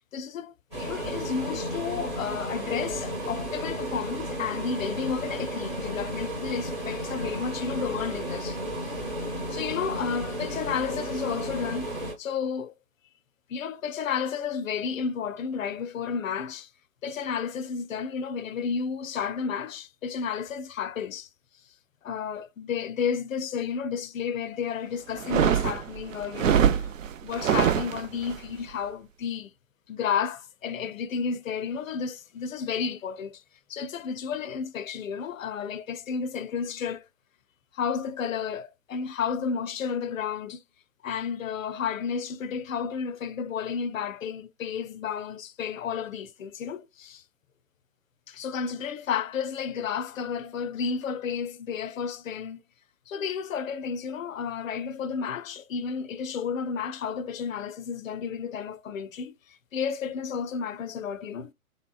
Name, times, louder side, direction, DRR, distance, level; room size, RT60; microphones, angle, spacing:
voice 1, 0.1-9.0 9.5-12.7 13.5-16.7 17.0-21.3 22.0-26.6 27.2-29.5 29.9-33.4 33.7-37.1 37.7-40.6 41.0-47.2 48.3-52.6 53.1-61.5, left 6 dB, 65° left, 0.5 m, -32 dB
sound 1, 0.7-12.1, right 1 dB, 5° right, 0.6 m, -33 dB
sound 2, 25.1-28.4, right 9 dB, 65° right, 0.5 m, -24 dB
3.2 x 2.8 x 2.3 m
figure-of-eight pair, 140°, 42 cm